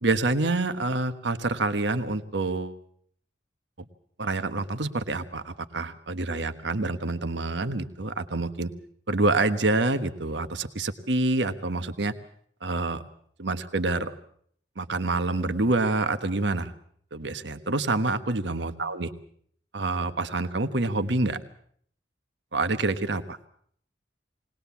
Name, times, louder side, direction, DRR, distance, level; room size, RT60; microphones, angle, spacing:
voice 1, 0.0-2.8 4.2-8.7 9.1-12.1 12.6-13.0 13.4-14.1 14.8-16.7 17.1-19.1 19.7-21.4 22.5-23.2, right 2 dB, 75° right, 9 dB, 1.3 m, -27 dB
20.0 x 20.0 x 7.2 m, 0.62 s
head